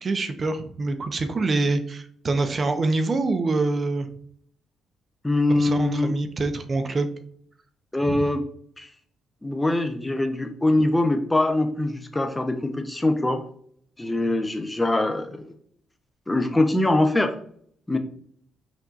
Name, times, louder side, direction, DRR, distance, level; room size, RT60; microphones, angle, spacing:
voice 1, 0.0-4.1 5.6-7.2 8.0-8.3, right 3 dB, 40° right, 8 dB, 0.6 m, -25 dB
voice 2, 5.2-6.2 7.9-8.4 8.8-8.9 9.4-13.4 14.0-15.5 16.3-17.3 17.9-18.0, left 2 dB, 10° left, 7 dB, 0.6 m, -23 dB
6.0 x 2.7 x 2.4 m, 0.62 s
cardioid pair, 90°, 0 cm